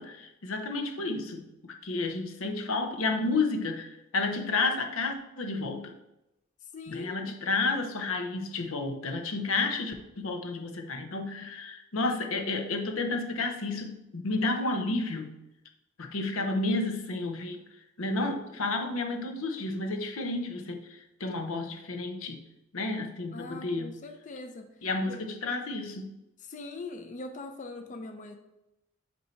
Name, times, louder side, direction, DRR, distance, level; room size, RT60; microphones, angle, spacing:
voice 1, 0.0-5.9 6.9-15.3 16.0-17.6 18.0-22.4 22.7-23.9 24.8-26.1, left 3 dB, 90° left, 5 dB, 0.7 m, -31 dB
voice 2, 6.7-7.4 23.3-24.7 25.1-25.2 26.4-28.3, left 3 dB, 40° left, 5 dB, 0.5 m, -41 dB
8.2 x 2.8 x 4.4 m, 0.91 s
head